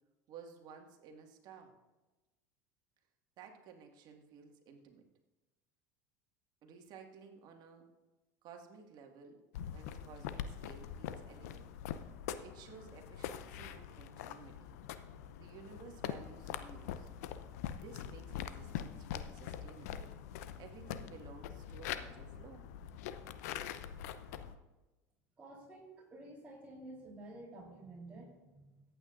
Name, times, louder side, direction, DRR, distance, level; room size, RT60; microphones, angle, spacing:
voice 1, 0.3-1.7 3.4-5.0 6.6-7.9 8.4-9.4 9.7-11.7 12.4-14.7 15.4-17.1 17.8-20.1 20.6-22.6, right 6 dB, 55° right, 3 dB, 1.9 m, -55 dB
sound 1, 9.5-24.6, left 9 dB, 70° left, 0.7 m, -44 dB
voice 2, 25.4-28.8, right 2 dB, 15° right, -6 dB, 3.7 m, -51 dB
22.5 x 8.9 x 2.6 m, 1.1 s
hypercardioid pair, 75°, 9 cm